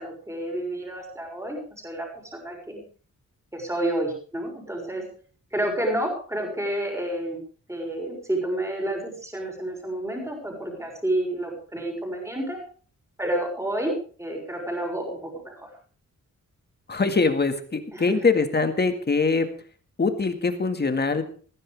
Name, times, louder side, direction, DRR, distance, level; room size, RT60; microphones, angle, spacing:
voice 1, 0.0-1.6 1.8-2.8 3.5-5.0 5.5-7.4 7.7-12.6 13.2-13.9 14.2-15.7 17.9-18.2, right 1 dB, 10° right, 0 dB, 6.1 m, -30 dB
voice 2, 16.9-19.5 20.0-21.2, left 4 dB, 35° left, 7 dB, 2.0 m, -23 dB
21.0 x 15.5 x 3.5 m, 0.42 s
wide cardioid pair, 175°, 31 cm